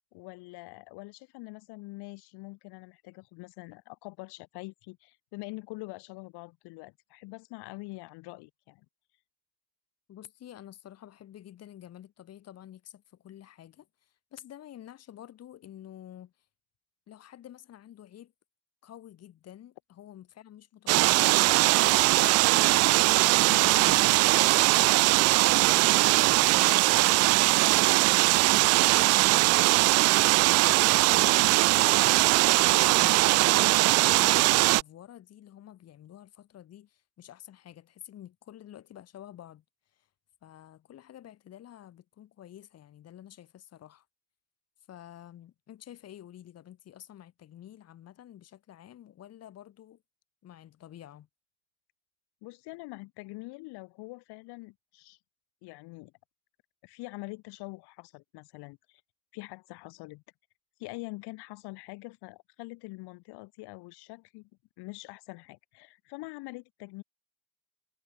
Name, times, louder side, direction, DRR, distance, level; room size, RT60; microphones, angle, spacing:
voice 1, 0.1-8.8 52.4-55.2 55.6-56.1 56.8-59.0 59.3-60.2 60.8-64.5 64.8-67.0, left 24 dB, 60° left, 6.6 m, -44 dB
voice 2, 10.1-16.3 17.1-18.3 18.8-26.8 27.2-33.5 33.8-39.6 39.9-40.1 40.4-44.1 44.9-50.0 50.4-51.3, left 11 dB, 35° left, 7.9 m, -49 dB
sound 1, 20.9-34.8, right 20 dB, 35° right, 0.4 m, -21 dB
cardioid pair, 175°, 44 cm